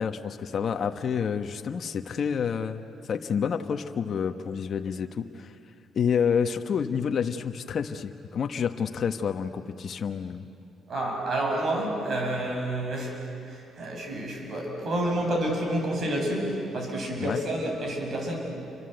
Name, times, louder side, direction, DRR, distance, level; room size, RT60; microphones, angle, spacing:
voice 1, 0.0-2.8 3.1-5.5 5.9-10.5 17.2-17.4, left 7 dB, 55° left, 6 dB, 1.2 m, -29 dB
voice 2, 10.9-13.2 13.5-18.4, right 1 dB, 55° right, 1 dB, 7.5 m, -29 dB
29.5 x 24.5 x 8.0 m, 2.5 s
cardioid pair, 90°, 0 cm